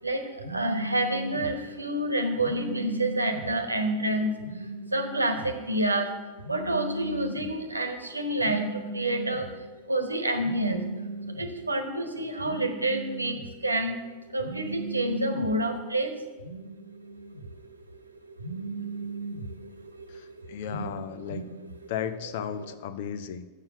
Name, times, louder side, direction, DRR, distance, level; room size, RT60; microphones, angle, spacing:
voice 1, 0.0-14.0 14.3-17.5 18.4-21.5 22.6-22.7, right 1 dB, 80° right, 6 dB, 1.0 m, -29 dB
voice 2, 20.1-21.4 21.9-23.5, left 8 dB, 55° left, 12 dB, 0.6 m, -35 dB
7.2 x 6.6 x 7.7 m, 1.2 s
figure-of-eight pair, 90°, 0 cm